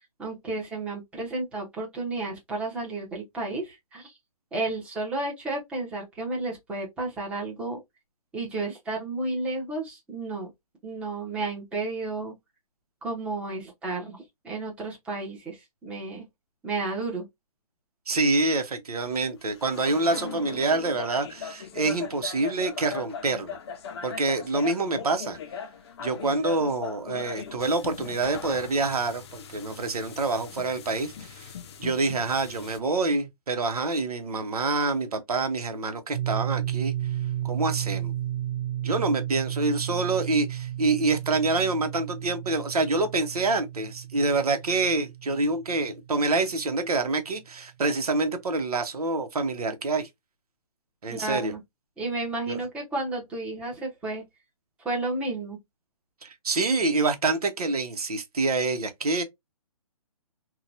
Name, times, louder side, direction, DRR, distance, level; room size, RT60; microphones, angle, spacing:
voice 1, 0.2-4.1 4.5-7.8 8.3-10.5 10.8-12.3 13.0-14.2 14.4-16.2 16.6-17.3 51.1-51.6 52.0-54.2 54.8-55.6, right 2 dB, 5° right, 0.8 m, -32 dB
voice 2, 18.1-23.6 24.0-25.4 26.0-31.5 31.8-36.9 37.4-38.1 38.8-50.1 51.0-51.5 52.5-52.6 56.2-59.2, right 3 dB, 85° right, 0.9 m, -26 dB
sound 1, 19.1-19.2 19.5-32.8, left 7 dB, 45° left, 0.5 m, -39 dB
sound 2, 36.1-46.7, right 12 dB, 60° right, 0.4 m, -33 dB
2.8 x 2.2 x 2.5 m
hypercardioid pair, 155°, 19 cm